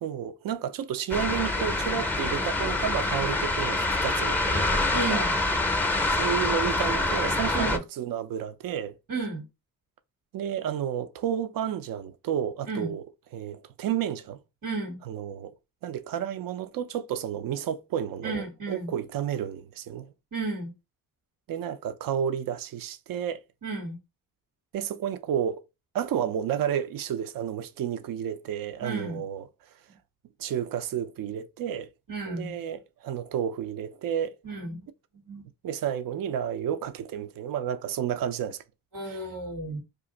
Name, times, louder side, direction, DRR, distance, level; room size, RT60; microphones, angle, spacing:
voice 1, 0.0-5.3 6.2-8.9 10.3-13.1 13.3-14.4 15.1-15.6 15.8-20.1 21.5-23.4 24.7-25.6 25.9-29.5 30.4-31.9 32.2-34.4 35.6-38.6 39.1-39.2, right 9 dB, 70° right, 0.5 m, -31 dB
sound 1, 1.1-7.8, left 2 dB, 5° left, 0.5 m, -26 dB
voice 2, 4.9-5.3 7.5-7.8 9.1-9.4 12.7-12.9 14.6-15.0 18.2-18.9 20.3-20.7 23.6-24.0 28.8-29.2 32.1-32.5 34.4-34.9 35.2-35.4 38.9-39.8, right 3 dB, 85° right, 1.3 m, -33 dB
2.5 x 2.4 x 3.8 m
cardioid pair, 55°, 35 cm